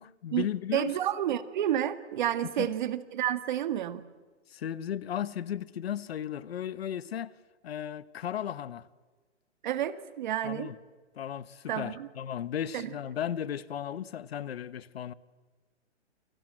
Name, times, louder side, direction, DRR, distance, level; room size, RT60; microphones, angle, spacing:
voice 1, 0.0-0.9 2.6-2.7 4.5-7.3 7.6-8.9 10.4-10.7 11.2-15.1, left 10 dB, 55° left, 1.2 m, -35 dB
voice 2, 0.7-4.1 9.6-10.7 11.7-12.1 12.7-12.9, right 11 dB, 40° right, 1.8 m, -30 dB
29.0 x 25.0 x 7.7 m
hypercardioid pair, 165°, 36 cm